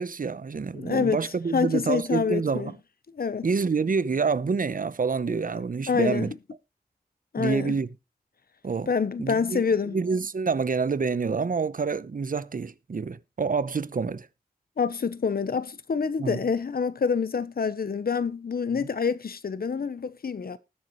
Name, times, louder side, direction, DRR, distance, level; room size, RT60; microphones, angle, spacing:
voice 1, 0.0-2.8 3.4-6.3 7.4-7.9 8.6-8.9 9.2-9.6 9.9-14.3 16.2-16.4, right 5 dB, 60° right, 0.7 m, -27 dB
voice 2, 0.7-1.2 1.5-2.7 3.1-3.5 5.3-5.4 5.9-6.3 7.3-7.8 8.9-10.0 14.8-20.6, left 5 dB, 75° left, 0.8 m, -27 dB
19.5 x 6.7 x 3.0 m
cardioid pair, 50°, 16 cm